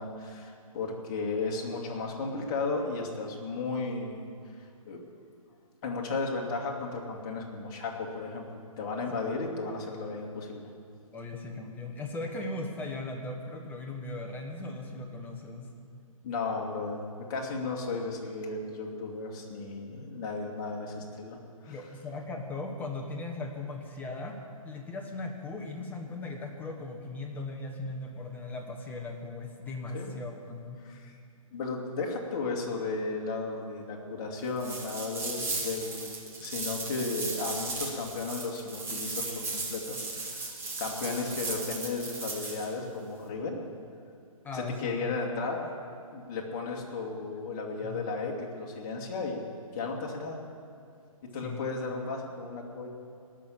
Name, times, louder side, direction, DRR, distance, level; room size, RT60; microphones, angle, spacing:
voice 1, 0.0-4.2 4.9-5.0 5.8-10.7 16.2-17.0 17.3-21.8 29.9-30.1 30.8-31.1 31.5-36.1 36.4-43.6 44.5-45.6 46.1-49.4 49.7-50.4 51.3-52.9, left 3 dB, 35° left, 0 dB, 2.2 m, -34 dB
voice 2, 11.1-15.7 21.7-24.4 24.6-30.8 44.4-45.2 47.8-48.1 51.4-51.6, left 2 dB, 10° left, 1 dB, 1.3 m, -38 dB
sound 1, 34.6-42.7, right 3 dB, 10° right, 1.8 m, -36 dB
19.0 x 6.5 x 8.8 m, 2.4 s
figure-of-eight pair, 135°, 19 cm